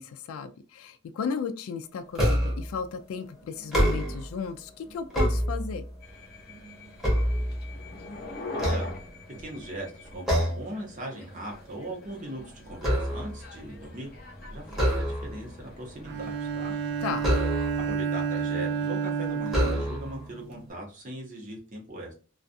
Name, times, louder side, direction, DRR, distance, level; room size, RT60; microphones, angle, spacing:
voice 1, 0.0-5.8 17.0-17.3, left 5 dB, 85° left, 10 dB, 0.3 m, -34 dB
sound 1, 2.1-2.7 3.6-4.4 4.9-6.0 6.5-8.0 8.5-9.5 10.3-10.8 11.1-11.4 11.8-13.5 14.7-15.5 17.2-18.0 18.7-18.8 19.5-20.2, equal, 5° right, 0.9 m, -27 dB
sound 2, 6.0-17.9, left 2 dB, 45° left, 0.7 m, -44 dB
voice 2, 8.5-8.9 9.4-14.1 14.5-16.7 17.9-22.1, right 1 dB, 40° right, -1 dB, 0.9 m, -39 dB
Bowed string instrument, 16.1-20.7, right 6 dB, 55° right, 0.4 m, -30 dB
2.4 x 2.3 x 2.5 m, 0.36 s
head